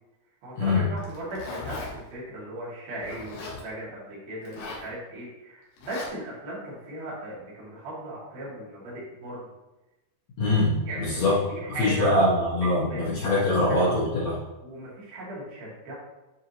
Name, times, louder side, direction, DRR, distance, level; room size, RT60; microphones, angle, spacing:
voice 1, 0.4-9.5 10.9-12.2 12.8-13.9 14.6-15.9, right 1 dB, 65° right, -8 dB, 4.2 m, -37 dB
Zipper (clothing), 1.0-1.9 3.0-3.6 4.4-4.9 5.8-6.1, left 3 dB, 80° left, 3.6 m, -38 dB
voice 2, 10.4-11.4 11.8-14.3, left 1 dB, 55° left, -8 dB, 2.3 m, -23 dB
10.0 x 4.9 x 3.0 m, 1.0 s
omnidirectional pair, 4.6 m